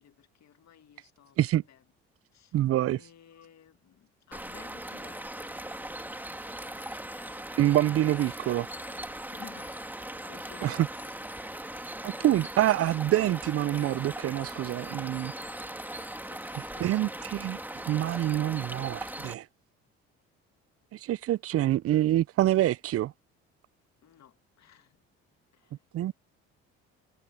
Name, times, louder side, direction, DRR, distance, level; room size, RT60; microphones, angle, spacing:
voice 1, 0.0-1.8 2.3-2.6 2.9-5.8 9.3-11.3 11.8-12.2 16.2-17.3 24.0-25.0 25.5-25.9, left 10 dB, 55° left, 2.4 m, -55 dB
voice 2, 2.5-3.0 7.6-8.7 10.6-10.9 12.0-15.3 16.8-19.5 20.9-23.1 25.9-26.1, right 13 dB, 45° right, 0.5 m, -26 dB
sound 1, 4.3-19.3, right 1 dB, 5° right, 2.3 m, -39 dB
sound 2, 6.6-16.7, left 20 dB, 80° left, 3.3 m, -58 dB
supercardioid pair, 65°, 32 cm